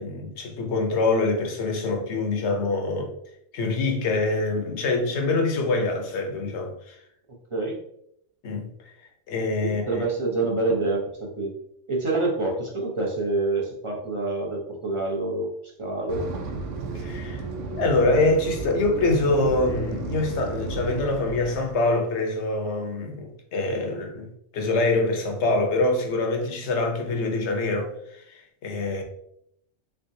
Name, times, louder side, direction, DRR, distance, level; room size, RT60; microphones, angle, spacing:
voice 1, 0.0-3.1 3.5-7.0 8.4-8.7 9.3-10.1 16.9-17.4 17.8-29.0, left 2 dB, 70° left, 1.0 m, -25 dB
voice 2, 9.6-11.5 11.9-15.5 15.8-16.3, right 2 dB, 30° right, 0.7 m, -27 dB
sound 1, 16.1-21.9, right 3 dB, 85° right, 1.0 m, -33 dB
3.6 x 3.3 x 2.7 m
omnidirectional pair, 1.3 m